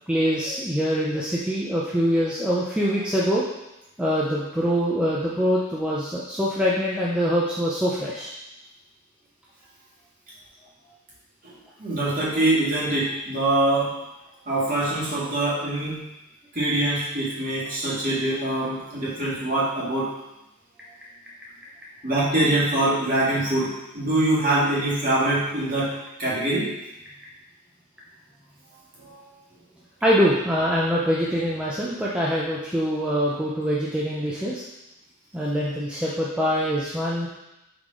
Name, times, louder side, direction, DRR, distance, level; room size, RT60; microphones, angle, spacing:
voice 1, 0.1-3.4 4.0-8.3 30.0-34.6 35.3-37.3, equal, 5° right, -6 dB, 0.5 m, -24 dB
voice 2, 11.8-13.9 14.5-16.0 16.5-20.1 22.0-26.7 29.0-29.3, right 1 dB, 40° right, -7 dB, 2.0 m, -24 dB
5.6 x 4.8 x 3.8 m, 0.93 s
head